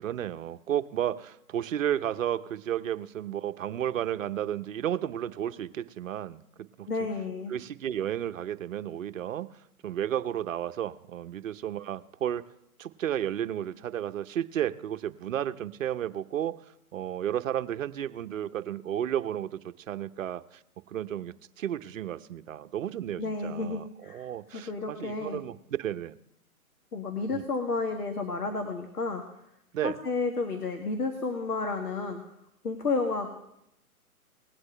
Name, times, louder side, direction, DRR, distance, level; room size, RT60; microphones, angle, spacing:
voice 1, 0.0-6.4 6.8-6.9 7.5-9.5 9.8-12.5 12.8-16.6 16.9-20.6 20.9-25.5 25.8-26.2 27.3-27.4 29.7-30.0, right 10 dB, 60° right, 11 dB, 0.8 m, -32 dB
voice 2, 6.9-7.5 23.2-24.3 24.5-25.4 26.9-29.2 29.8-32.2 32.6-33.3, left 3 dB, 90° left, 4 dB, 1.7 m, -31 dB
20.0 x 8.0 x 3.3 m, 0.80 s
hypercardioid pair, 135°, 44 cm